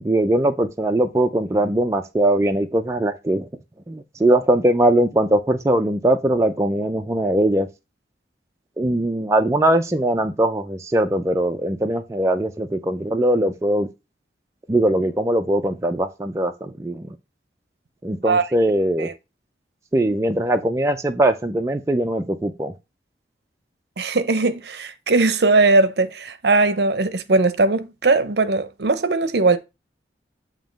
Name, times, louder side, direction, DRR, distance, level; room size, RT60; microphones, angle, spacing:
voice 1, 0.0-3.5 3.9-7.7 8.8-13.9 14.7-17.2 18.0-19.1 19.9-22.7, right 1 dB, 15° right, 0.4 m, -21 dB
voice 2, 24.0-29.6, right 3 dB, 65° right, 0.7 m, -19 dB
7.4 x 2.8 x 5.1 m
head